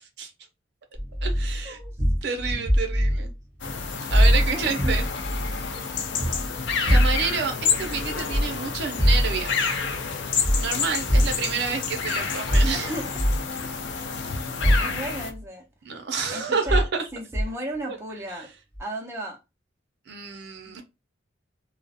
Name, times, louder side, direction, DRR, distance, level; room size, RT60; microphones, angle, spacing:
sound 1, 0.9-3.4 3.6-5.7 6.0-7.4 7.8-8.5 8.8-9.5 10.4-10.7 11.1-11.3 12.5-13.4 14.6-14.8 15.3-15.4 16.7-16.9 17.3-17.5 18.7-18.8, equal, 10° left, 0.9 m, -22 dB
voice 1, 1.2-1.8 2.2-3.3 4.1-5.1 6.9-9.7 10.6-13.0 15.8-17.1 17.8-18.0 20.1-20.8, right 5 dB, 60° right, 0.5 m, -29 dB
sound 2, 3.6-15.3, left 5 dB, 65° left, 0.4 m, -29 dB
voice 2, 4.5-5.0 6.0-6.1 12.7-13.1 14.2-15.6 16.3-16.8 17.1-18.5 18.8-19.4 20.7-20.8, right 1 dB, 15° right, 0.5 m, -35 dB
2.3 x 2.0 x 2.6 m
head